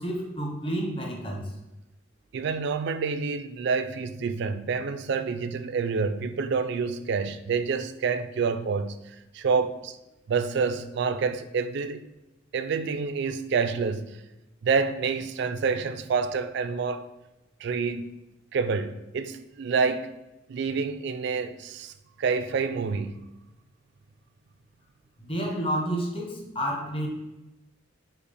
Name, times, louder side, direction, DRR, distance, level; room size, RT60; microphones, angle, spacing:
voice 1, 0.0-1.5 25.2-27.1, right 1 dB, 30° left, 0.9 m, -30 dB
voice 2, 2.3-10.0 10.3-12.1 12.5-14.2 14.6-17.1 17.6-18.1 18.5-20.1 20.5-21.9 22.2-23.2, right 5 dB, 60° right, 0.3 m, -28 dB
5.5 x 2.1 x 4.1 m
head